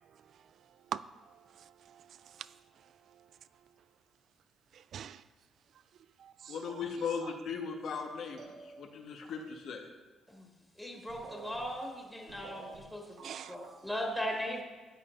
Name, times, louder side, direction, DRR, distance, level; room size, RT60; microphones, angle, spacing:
voice 1, 1.3-2.5 4.7-5.2 6.2-6.6 13.2-13.5, right 9 dB, 65° right, 16 dB, 0.3 m, -43 dB
voice 2, 6.5-9.9, left 5 dB, 70° left, 3 dB, 1.2 m, -38 dB
sound 1, 8.4-9.2 10.8-10.9 11.1-14.1, right 4 dB, 85° right, 1.2 m, -51 dB
voice 3, 10.8-13.2 13.5-14.6, equal, 5° left, -1 dB, 1.7 m, -38 dB
13.5 x 8.7 x 2.6 m, 1.4 s
cardioid pair, 90°, 0 cm